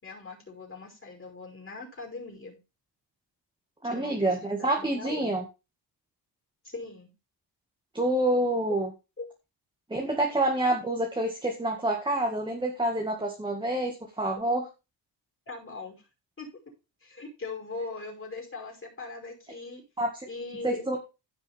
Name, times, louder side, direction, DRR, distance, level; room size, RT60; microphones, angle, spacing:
voice 1, 0.0-2.6 3.8-5.3 6.6-7.1 9.2-9.3 15.5-16.1 16.4-16.5 17.0-19.8 20.3-20.9, left 3 dB, 30° left, 0 dB, 5.6 m, -40 dB
voice 2, 3.8-5.4 7.9-8.9 9.9-14.7 20.0-20.1 20.6-21.0, right 1 dB, 10° right, 0 dB, 1.9 m, -27 dB
15.5 x 6.1 x 3.5 m, 0.28 s
wide cardioid pair, 135°, 45 cm